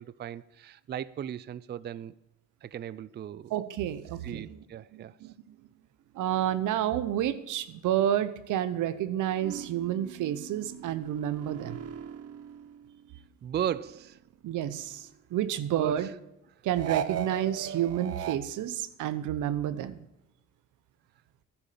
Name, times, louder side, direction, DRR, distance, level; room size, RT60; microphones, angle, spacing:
voice 1, 0.0-2.1 2.6-3.5 4.2-5.1 13.4-14.2 15.8-16.1, right 10 dB, 35° right, 0.4 m, -36 dB
voice 2, 3.5-4.6 4.9-5.5 6.1-11.8 14.4-15.0 15.3-16.1 16.6-19.9, right 11 dB, 85° right, 0.9 m, -30 dB
sound 1, 9.4-13.3 13.6-15.2 16.7-18.4, right 9 dB, 55° right, 0.8 m, -39 dB
11.0 x 7.1 x 8.4 m
cardioid pair, 90°, 30 cm